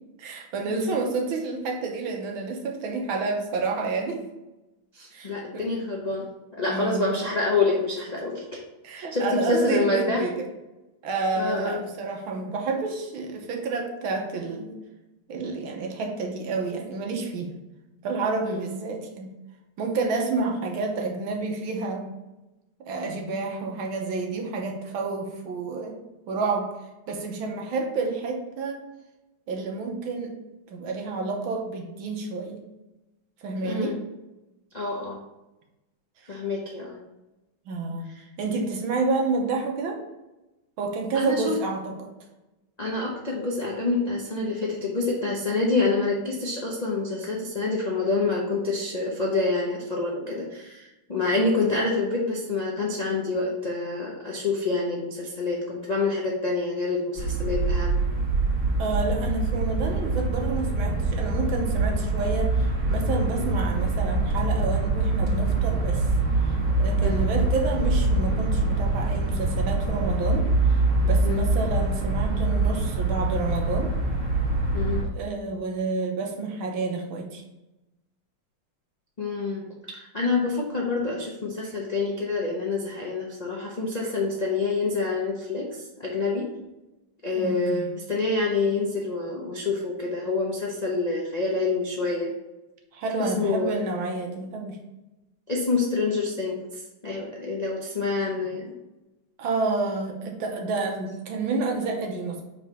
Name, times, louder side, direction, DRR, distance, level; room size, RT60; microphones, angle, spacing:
voice 1, 0.2-4.2 5.1-5.7 6.7-7.1 8.8-10.3 11.0-14.8 15.3-17.5 18.0-19.3 19.8-22.1 22.8-26.0 26.3-26.7 27.1-28.8 29.5-30.3 30.7-32.6 33.4-34.0 37.7-38.1 38.4-40.0 40.8-42.1 58.8-66.1 66.5-70.5 71.0-73.9 75.1-77.4 87.4-87.9 92.9-94.8 99.4-102.4, right 3 dB, 70° right, 2 dB, 1.7 m, -29 dB
voice 2, 4.9-6.3 6.5-8.6 8.9-10.2 11.4-11.8 18.5-18.6 33.6-33.9 34.7-35.2 36.3-37.0 41.1-41.5 42.8-58.0 67.0-67.3 71.2-71.5 74.7-75.0 79.2-86.5 87.2-92.3 93.2-93.8 95.5-96.6 97.0-98.7, left 3 dB, 70° left, -4 dB, 0.4 m, -27 dB
sound 1, 57.2-75.0, right 2 dB, 40° right, 1.6 m, -24 dB
5.3 x 4.4 x 4.2 m, 1.0 s
omnidirectional pair, 2.4 m